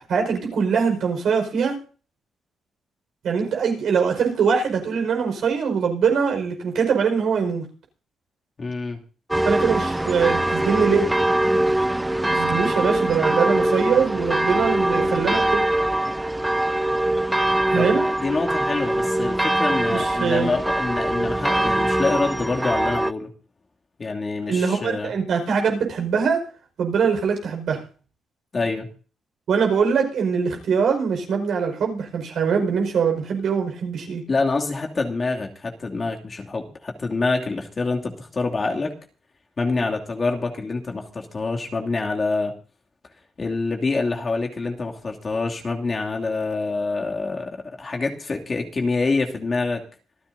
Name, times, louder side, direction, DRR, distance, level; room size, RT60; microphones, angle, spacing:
voice 1, 0.0-1.8 3.2-7.6 9.4-11.1 12.3-15.6 17.7-18.0 19.9-20.5 24.5-26.5 26.8-27.8 29.5-34.2, right 6 dB, 70° right, 2 dB, 5.2 m, -22 dB
voice 2, 8.6-9.0 17.7-23.3 24.0-25.1 28.5-28.9 34.3-38.9 39.6-42.5 43.4-49.8, left 3 dB, 40° left, 1 dB, 2.7 m, -26 dB
sound 1, 9.3-23.1, right 1 dB, 10° right, 0.6 m, -22 dB
26.5 x 10.0 x 2.8 m, 0.38 s
cardioid pair, 70°, 0 cm